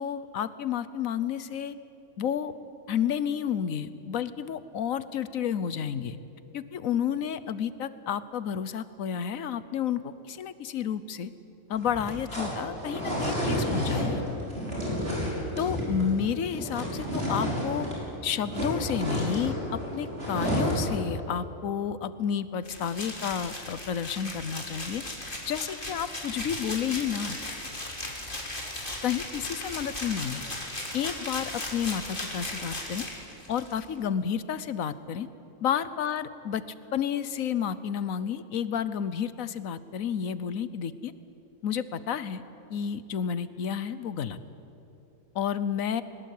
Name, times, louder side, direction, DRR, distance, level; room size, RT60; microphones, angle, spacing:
voice 1, 0.0-1.7 2.2-2.5 2.9-6.2 6.5-11.3 11.7-14.2 15.6-17.9 18.2-25.0 25.5-27.4 29.0-30.4 30.9-33.1 33.5-35.3 35.6-36.6 36.9-41.1 41.6-42.4 42.7-44.4 45.3-46.0, left 8 dB, 85° left, 14 dB, 1.3 m, -31 dB
sound 1, 11.7-18.0 18.3-21.0, equal, 50° right, 6.3 m, -30 dB
sound 2, 22.6-33.8, left 1 dB, 40° left, 3.4 m, -37 dB
22.0 x 20.5 x 8.5 m, 2.8 s
omnidirectional pair, 1.4 m